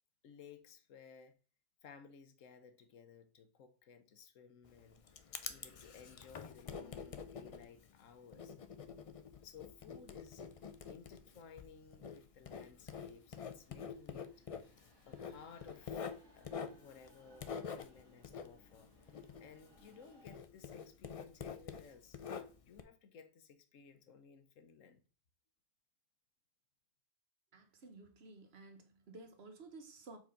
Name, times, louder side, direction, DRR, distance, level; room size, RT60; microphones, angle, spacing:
voice 1, 0.2-1.4 1.8-5.0 5.5-8.5 9.4-10.4 10.9-14.5 15.1-25.0, left 6 dB, 85° left, 1.2 m, -58 dB
Writing, 4.6-20.0 20.3-22.8, left 6 dB, 65° left, 0.3 m, -47 dB
sound 1, 8.8-20.4, equal, 20° right, 1.4 m, -69 dB
voice 2, 27.5-30.2, right 3 dB, 55° right, 1.2 m, -54 dB
4.9 x 3.9 x 5.2 m
omnidirectional pair, 1.3 m